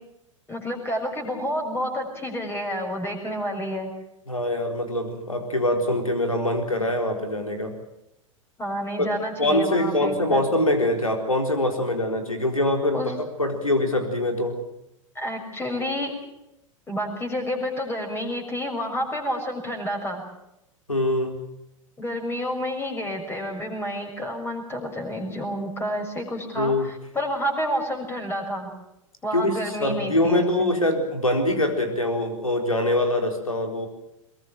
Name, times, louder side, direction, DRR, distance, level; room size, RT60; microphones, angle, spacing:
voice 1, 0.5-3.9 8.6-10.4 12.9-13.1 15.1-16.1 16.9-20.2 22.0-28.7 29.2-30.7, equal, 15° left, 3 dB, 6.6 m, -29 dB
voice 2, 4.3-7.7 9.0-9.1 9.4-13.1 13.4-14.6 20.9-21.4 26.6-26.9 29.3-33.9, left 1 dB, 85° left, 5 dB, 4.1 m, -24 dB
22.5 x 22.0 x 7.5 m, 0.84 s
figure-of-eight pair, 90°, 17 cm